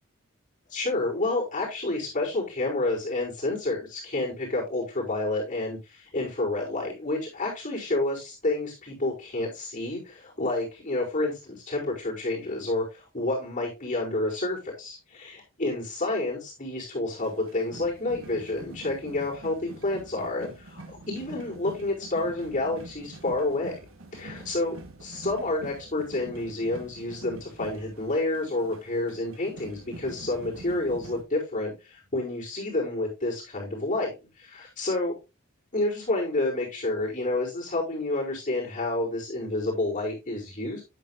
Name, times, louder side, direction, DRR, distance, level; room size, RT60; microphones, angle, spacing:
voice 1, 0.7-23.9 24.1-35.2 35.7-40.8, left 2 dB, 40° left, -5 dB, 4.6 m, -29 dB
sound 1, 17.2-31.2, right 2 dB, 65° right, 1.4 m, -45 dB
9.6 x 8.2 x 2.4 m, 0.26 s
head